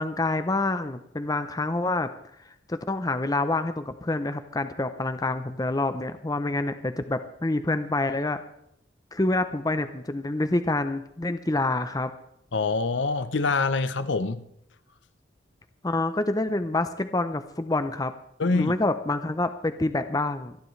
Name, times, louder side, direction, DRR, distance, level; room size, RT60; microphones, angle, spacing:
voice 1, 0.0-2.1 2.7-8.4 9.1-12.1 15.8-18.1 18.4-20.6, left 2 dB, 20° left, 0.6 m, -27 dB
voice 2, 12.5-14.4 18.4-18.7, left 3 dB, 70° left, 0.8 m, -25 dB
27.0 x 10.5 x 3.2 m
head